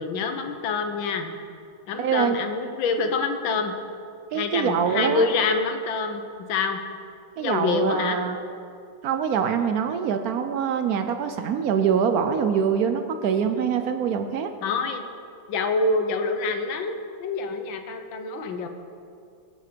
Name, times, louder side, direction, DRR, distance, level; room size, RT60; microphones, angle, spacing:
voice 1, 0.0-1.4 1.9-3.7 4.3-6.2 6.5-6.8 7.4-8.2 14.6-15.0 15.5-18.7, left 4 dB, 70° left, 6 dB, 1.6 m, -26 dB
voice 2, 2.0-2.4 4.3-5.3 7.4-8.4 9.0-14.5, right 7 dB, 80° right, 8 dB, 0.8 m, -24 dB
18.5 x 6.6 x 5.1 m, 2.4 s
omnidirectional pair, 2.3 m